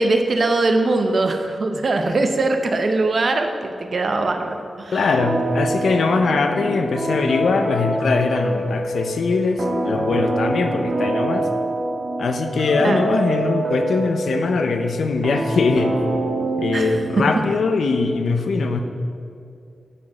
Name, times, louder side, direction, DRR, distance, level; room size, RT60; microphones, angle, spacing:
voice 1, 0.0-5.1 12.8-13.0 16.7-17.0 17.3-17.4, right 2 dB, 50° right, 6 dB, 0.7 m, -21 dB
voice 2, 4.9-11.5 12.2-16.0 16.6-18.8, left 4 dB, 80° left, 6 dB, 0.7 m, -21 dB
sound 1, 5.2-17.6, right 1 dB, 75° right, 1.4 m, -25 dB
9.7 x 5.2 x 6.1 m, 2.4 s
wide cardioid pair, 125°, 0 cm